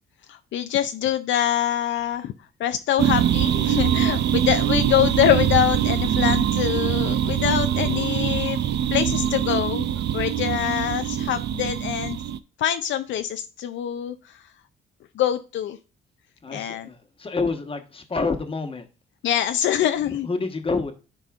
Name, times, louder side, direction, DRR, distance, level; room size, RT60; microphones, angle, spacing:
voice 1, 0.3-2.3 2.6-9.9 10.1-12.2 12.6-14.4 15.2-15.8 16.5-16.9 19.2-20.3, left 11 dB, 70° left, 0.5 m, -24 dB
sound 1, 3.0-12.4, right 10 dB, 60° right, 0.5 m, -23 dB
voice 2, 16.4-18.9 19.8-20.9, left 3 dB, 25° left, 1.2 m, -28 dB
10.5 x 4.1 x 2.4 m
cardioid pair, 90°, 20 cm